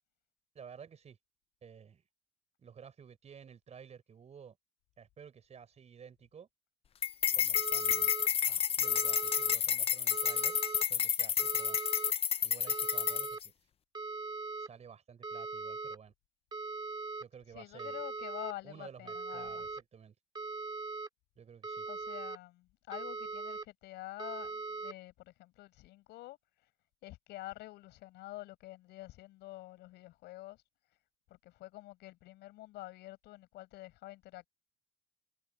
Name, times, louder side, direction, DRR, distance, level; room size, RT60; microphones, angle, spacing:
voice 1, 0.5-1.2 1.6-2.0 2.6-4.6 5.0-6.5 7.3-8.2 8.5-10.6 10.9-11.8 12.4-13.5 14.6-16.1 17.2-18.0 18.6-20.1 21.4-21.9, right 7 dB, 40° right, 5.3 m, -53 dB
sound 1, 7.0-13.5, left 8 dB, 35° left, 0.5 m, -30 dB
sound 2, 7.5-8.3 8.8-9.6 10.1-10.8 11.4-12.1 12.7-13.4 13.9-14.7 15.2-16.0 16.5-17.2 17.8-18.5 19.1-19.8 20.3-21.1 21.6-22.4 22.9-23.6 24.2-24.9, right 3 dB, 25° right, 2.9 m, -40 dB
voice 2, 17.5-19.6 21.9-26.4 27.0-30.6 31.3-34.5, left 17 dB, 85° left, 7.0 m, -47 dB
cardioid pair, 110°, 17 cm